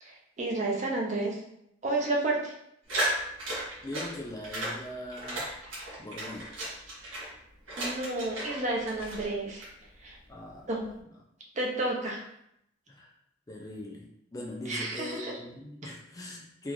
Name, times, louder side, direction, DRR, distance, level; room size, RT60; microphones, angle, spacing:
voice 1, 0.0-1.4 1.8-2.5 7.8-9.7 10.0-10.2 10.7-10.9 11.6-12.2 14.7-15.4 15.8-15.9, right 2 dB, 35° right, -2 dB, 0.6 m, -31 dB
sound 1, 2.9-4.1 4.4-4.7 5.1-7.3 7.7-8.6 8.9-9.7, right 1 dB, 80° right, 1.4 m, -34 dB
voice 2, 3.8-5.5 6.0-6.5 10.3-10.7 12.0-12.1 12.9-13.1 13.5-16.7, left 1 dB, 20° left, -1 dB, 0.3 m, -41 dB
3.6 x 2.4 x 3.0 m, 0.77 s
head